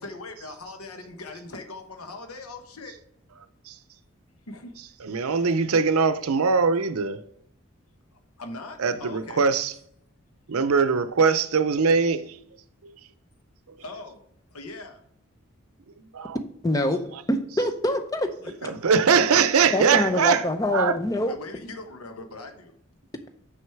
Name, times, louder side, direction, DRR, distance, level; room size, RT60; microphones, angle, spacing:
voice 1, 0.0-2.9 4.5-4.7 8.1-9.4 13.8-14.2 14.5-15.0 18.4-18.7 21.3-22.7, left 2 dB, 90° left, 1.1 m, -40 dB
voice 2, 5.0-7.2 8.8-9.7 10.5-12.4 12.8-13.0 16.1-16.4 18.7-20.9, right 5 dB, 85° right, 0.6 m, -22 dB
voice 3, 16.6-17.0 17.3-18.3 19.7-21.3, left 1 dB, 15° left, 0.6 m, -25 dB
6.3 x 6.2 x 4.6 m
head